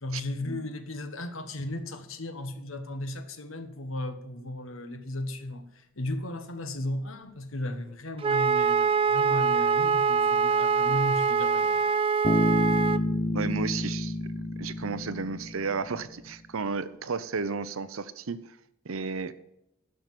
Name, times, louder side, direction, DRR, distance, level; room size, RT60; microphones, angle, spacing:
voice 1, 0.0-5.6 6.0-11.9, left 1 dB, 70° left, 9 dB, 1.2 m, -35 dB
Wind instrument woodwind instrument, 8.2-13.0, right 5 dB, 25° right, 0.3 m, -24 dB
Bass guitar, 12.2-16.0, left 1 dB, 25° left, 0.6 m, -29 dB
voice 2, 13.3-14.2 14.6-18.5 18.8-19.3, right 5 dB, 75° right, 14 dB, 0.7 m, -33 dB
12.0 x 5.8 x 7.6 m, 0.83 s
head